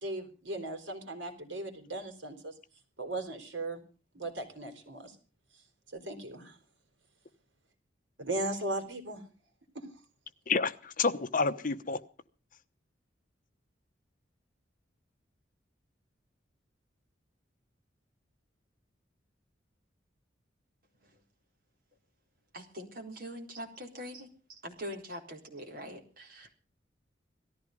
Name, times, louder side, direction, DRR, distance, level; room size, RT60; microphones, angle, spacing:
voice 1, 0.0-2.5 3.0-3.8 4.1-5.2 5.9-6.6 8.2-9.2 9.7-9.9, right 1 dB, 80° right, 4.0 m, -37 dB
voice 2, 10.5-12.0, left 4 dB, 45° left, 1.0 m, -29 dB
voice 3, 22.5-26.5, equal, 50° right, 4.2 m, -43 dB
18.0 x 14.0 x 5.2 m
head